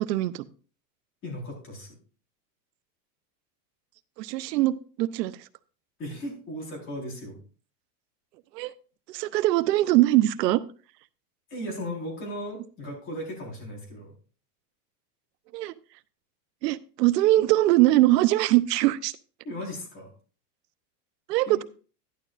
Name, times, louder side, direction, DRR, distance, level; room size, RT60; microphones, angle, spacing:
voice 1, 0.1-0.5 4.2-5.3 8.5-8.7 9.1-10.6 15.5-15.7 16.6-19.1 21.3-21.6, right 16 dB, 90° right, 14 dB, 0.8 m, -22 dB
voice 2, 1.2-2.0 6.0-7.4 11.5-14.1 17.4-17.5 19.4-20.1 21.5-21.6, equal, 25° left, -1 dB, 4.3 m, -36 dB
12.0 x 11.5 x 2.5 m, 0.38 s
supercardioid pair, 170°, 47 cm